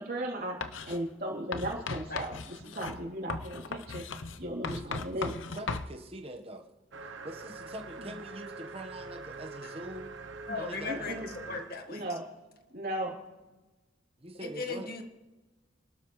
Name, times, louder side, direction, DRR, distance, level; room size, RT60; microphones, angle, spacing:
voice 1, 0.0-5.3 8.0-8.1 10.9-11.3 11.9-12.2 12.7-13.2, right 1 dB, 50° right, -2 dB, 3.5 m, -36 dB
Writing, 0.6-1.0 1.5-5.9, left 4 dB, 75° left, 0.8 m, -38 dB
voice 2, 5.2-6.7 7.2-10.2 10.6-11.1 14.2-14.9, right 1 dB, 30° right, 3 dB, 1.3 m, -43 dB
sound 1, 6.9-11.9, right 3 dB, 70° right, 0.9 m, -44 dB
voice 3, 10.5-12.0 14.6-15.0, left 4 dB, 50° left, 4 dB, 1.8 m, -37 dB
27.0 x 12.5 x 3.3 m, 1.1 s
head